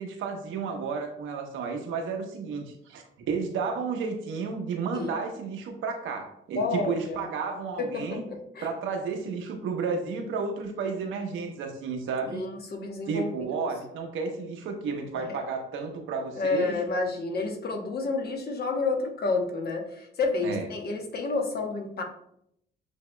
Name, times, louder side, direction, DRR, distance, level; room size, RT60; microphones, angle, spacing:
voice 1, 0.0-8.2 8.6-12.4 13.1-16.8 20.4-20.6, right 5 dB, 80° right, 3 dB, 0.9 m, -32 dB
voice 2, 6.5-7.2 7.8-8.7 12.3-13.6 15.1-15.4 16.4-22.0, left 3 dB, 50° left, 3 dB, 1.0 m, -30 dB
8.2 x 2.8 x 2.2 m, 0.74 s
cardioid pair, 90°, 20 cm